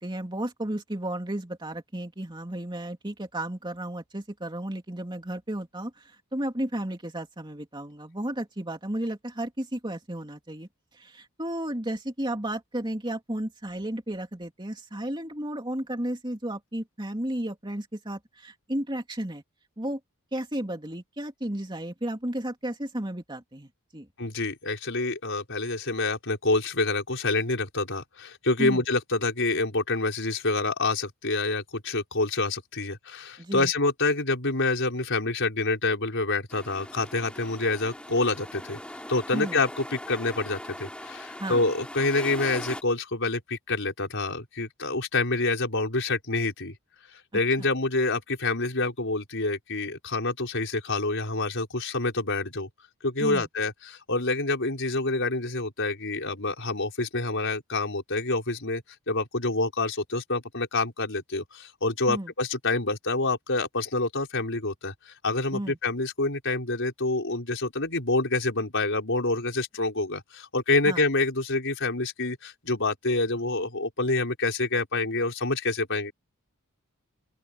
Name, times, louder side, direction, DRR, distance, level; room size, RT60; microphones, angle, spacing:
voice 1, 0.0-10.7 10.9-19.4 19.8-20.0 20.3-24.1 28.6-28.8 33.4-33.7 39.3-39.6 41.4-41.6 47.6-47.7 53.2-53.5 62.1-62.3 65.5-65.8 70.8-71.0, right 1 dB, 20° right, 2.8 m, -33 dB
voice 2, 24.2-38.8 39.1-46.8 47.1-52.7 53.0-76.1, left 3 dB, 55° left, 5.4 m, -27 dB
sound 1, 36.5-42.8, left 1 dB, 5° left, 3.9 m, -41 dB
open air
head